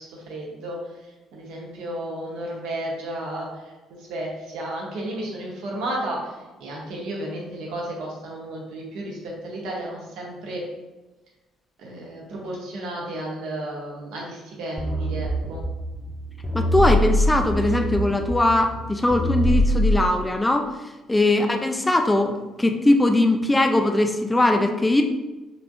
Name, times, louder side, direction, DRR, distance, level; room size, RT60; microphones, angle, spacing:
voice 1, 0.0-6.3 6.6-10.6 11.8-15.6 21.4-21.5, right 1 dB, 55° right, -3 dB, 0.8 m, -33 dB
sound 1, 14.8-20.1, equal, 15° right, 0.9 m, -24 dB
voice 2, 16.5-20.7 21.1-25.0, left 2 dB, 15° left, 5 dB, 0.5 m, -20 dB
5.0 x 3.4 x 2.5 m, 1.1 s
figure-of-eight pair, 45°, 0 cm